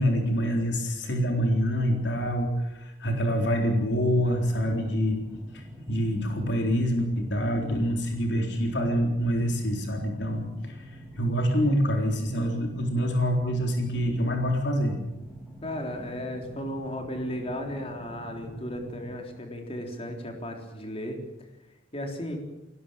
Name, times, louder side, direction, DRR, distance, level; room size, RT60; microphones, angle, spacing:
voice 1, 0.0-5.2 5.5-10.8 11.2-15.0, equal, 65° left, 2 dB, 3.9 m, -26 dB
sound 1, 3.3-19.2, right 1 dB, 10° left, 8.0 m, -45 dB
voice 2, 15.6-21.5 21.9-22.4, equal, 30° left, 3 dB, 3.8 m, -35 dB
21.0 x 18.5 x 9.0 m, 0.95 s
head